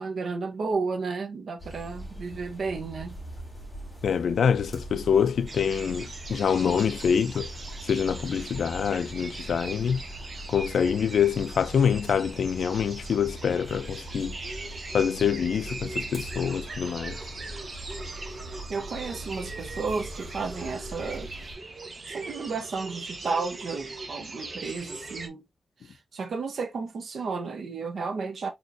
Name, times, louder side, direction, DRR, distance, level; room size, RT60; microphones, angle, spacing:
voice 1, 0.0-3.2 14.0-14.1 18.7-21.3 22.1-25.4 25.8-28.5, right 4 dB, 65° right, 0.8 m, -32 dB
sound 1, 1.6-21.5, right 1 dB, ahead, 2.7 m, -42 dB
voice 2, 4.0-7.5 7.8-10.0 10.5-14.4 14.9-17.2, left 7 dB, 75° left, 0.4 m, -25 dB
sound 2, 5.5-25.3, right 3 dB, 40° right, 1.0 m, -40 dB
4.6 x 4.3 x 2.6 m
wide cardioid pair, 160°, 0 cm